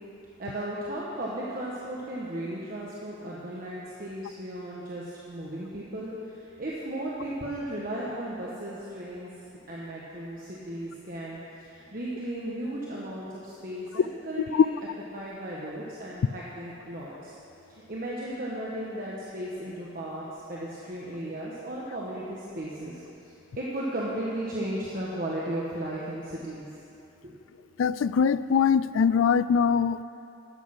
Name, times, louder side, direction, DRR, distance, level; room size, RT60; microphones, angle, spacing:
voice 1, 0.4-9.3 9.7-14.8 15.1-17.3 17.7-26.7 27.2-27.4, right 1 dB, 45° right, -5 dB, 1.3 m, -35 dB
voice 2, 27.8-30.0, left 6 dB, 85° left, 16 dB, 0.3 m, -22 dB
11.5 x 8.2 x 6.4 m, 2.8 s
head